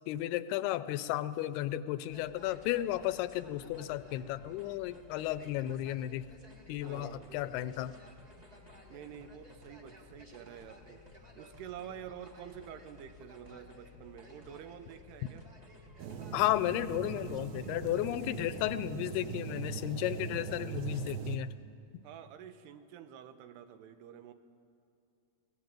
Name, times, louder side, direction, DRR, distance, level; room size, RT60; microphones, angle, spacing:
voice 1, 0.1-6.3 6.7-7.9 16.3-21.5, left 14 dB, 85° left, 14 dB, 2.6 m, -33 dB
sound 1, 2.1-18.8, left 2 dB, 35° right, 0.6 m, -55 dB
voice 2, 6.8-7.3 8.9-11.0 11.4-15.4 22.0-24.3, right 9 dB, 85° right, 10 dB, 3.1 m, -48 dB
sound 2, 16.0-21.4, right 7 dB, 70° right, 1.7 m, -40 dB
22.5 x 17.5 x 9.0 m, 2.6 s
omnidirectional pair, 4.6 m